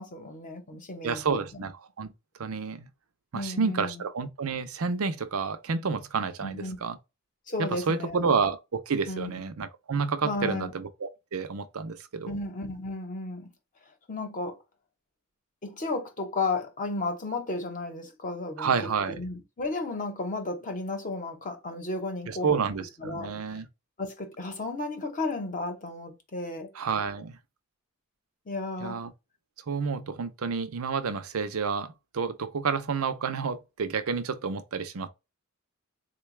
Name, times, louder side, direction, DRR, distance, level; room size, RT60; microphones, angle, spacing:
voice 1, 0.0-1.7 3.3-4.0 6.4-6.8 7.5-8.3 9.1-9.4 10.2-10.7 12.3-13.5 14.1-14.6 15.6-18.7 19.1-22.6 23.0-23.3 24.0-26.7 28.5-29.1, left 2 dB, 40° left, 0.9 m, -33 dB
voice 2, 1.0-2.1 2.4-2.9 3.3-7.0 7.6-12.3 18.6-19.2 22.3-23.7 26.7-27.4 28.8-29.1 29.7-35.1, right 5 dB, 80° right, 0.6 m, -30 dB
3.9 x 2.2 x 3.2 m
head